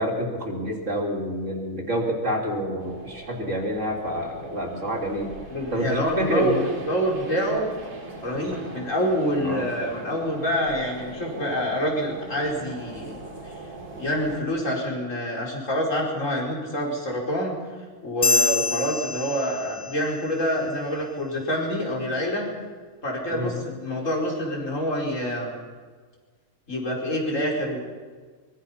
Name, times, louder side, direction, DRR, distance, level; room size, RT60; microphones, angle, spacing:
voice 1, 0.0-5.3 5.7-6.6 9.4-9.7 23.3-23.5, equal, 50° right, -2 dB, 3.8 m, -28 dB
sound 1, 2.8-14.4, right 2 dB, 75° right, 3.7 m, -40 dB
voice 2, 5.5-7.7 8.2-13.2 13.4-13.5 13.9-17.5 18.0-22.5 23.0-25.6 26.7-27.8, equal, 50° left, -1 dB, 5.3 m, -26 dB
sound 2, 18.2-20.1, left 3 dB, 35° left, 1.1 m, -25 dB
24.0 x 23.5 x 5.7 m, 1.5 s
omnidirectional pair, 1.6 m